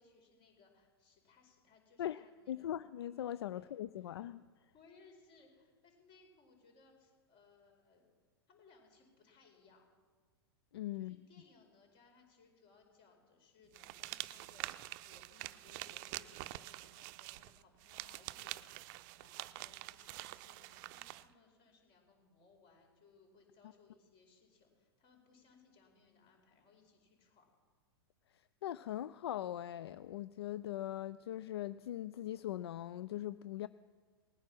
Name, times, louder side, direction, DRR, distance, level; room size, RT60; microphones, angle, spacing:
voice 1, 0.0-2.8 3.5-3.7 4.0-4.3 4.7-8.1 8.5-9.9 11.0-27.5, left 4 dB, 40° left, 3 dB, 4.7 m, -66 dB
voice 2, 2.0-4.4 10.7-11.2 28.3-33.7, left 12 dB, 70° left, 16 dB, 0.4 m, -41 dB
sound 1, 13.7-21.3, right 18 dB, 45° right, 0.5 m, -46 dB
19.0 x 9.6 x 6.0 m, 1.5 s
hypercardioid pair, 110°, 14 cm